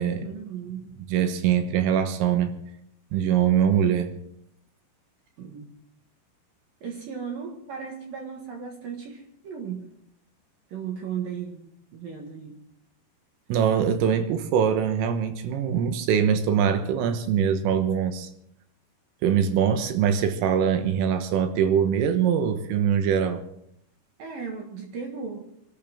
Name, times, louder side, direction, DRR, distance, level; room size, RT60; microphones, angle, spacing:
voice 1, 0.2-0.9 5.4-5.8 6.8-9.9 10.7-11.6 11.9-12.6 24.2-25.4, right 6 dB, 60° right, 1 dB, 2.8 m, -36 dB
voice 2, 1.1-2.5 3.1-4.1 13.5-18.3 19.2-23.4, right 8 dB, 85° right, 8 dB, 3.8 m, -23 dB
26.0 x 12.5 x 3.6 m, 0.73 s
omnidirectional pair, 5.8 m